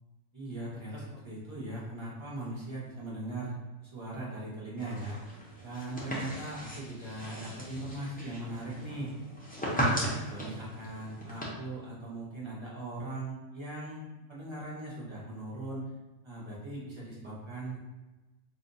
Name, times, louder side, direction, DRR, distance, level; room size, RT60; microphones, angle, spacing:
voice 1, 0.3-3.5 3.8-5.2 5.6-9.1 9.6-15.8 16.2-17.8, right 1 dB, 25° right, -6 dB, 0.8 m, -39 dB
sound 1, 4.8-11.4, equal, 10° left, 0.4 m, -37 dB
2.7 x 2.5 x 3.9 m, 1.1 s
omnidirectional pair, 1.3 m